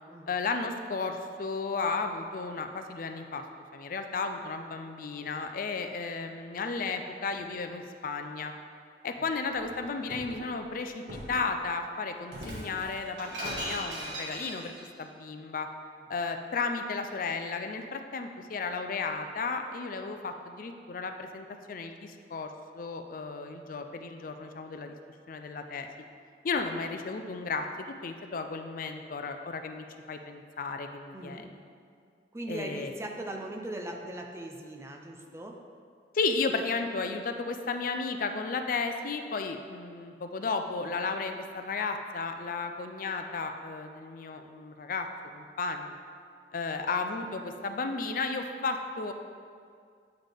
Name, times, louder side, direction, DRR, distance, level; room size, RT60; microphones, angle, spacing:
voice 1, 0.3-3.4 3.7-8.5 9.0-14.7 15.0-15.7 16.1-24.9 25.3-25.9 26.4-27.6 28.0-31.4 32.5-32.9 36.1-45.1 45.3-45.9 46.5-49.1, left 4 dB, 50° left, 6 dB, 0.4 m, -34 dB
Shatter, 9.5-10.3 11.1-11.4 12.3-14.9, equal, 80° right, 1.7 m, -38 dB
voice 2, 31.1-31.4 32.3-35.6, right 1 dB, 15° right, 2 dB, 0.5 m, -39 dB
8.9 x 5.7 x 3.5 m, 2.2 s
head